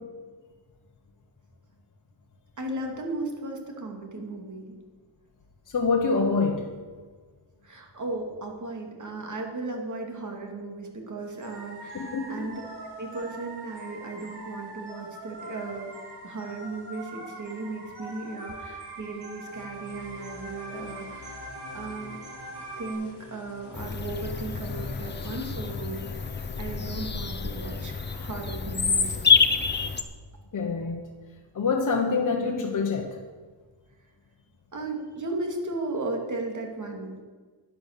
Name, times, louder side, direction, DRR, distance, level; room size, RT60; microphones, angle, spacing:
voice 1, 2.6-4.7 7.6-12.6 12.9-15.9 16.2-22.2 22.8-29.3 29.7-29.9 34.7-37.1, right 2 dB, 40° right, 2 dB, 2.6 m, -36 dB
voice 2, 5.7-6.7 11.9-12.5 30.5-31.0 31.5-33.2, left 4 dB, 40° left, 1 dB, 1.2 m, -26 dB
sound 1, 11.4-22.9, right 2 dB, 55° right, 4.0 m, -42 dB
sound 2, 19.5-27.1, left 4 dB, 60° left, 1.6 m, -45 dB
Bird vocalization bird call bird song, 23.7-30.0, left 5 dB, 25° left, 0.8 m, -27 dB
11.0 x 10.0 x 6.8 m, 1.4 s
wide cardioid pair, 140°, 46 cm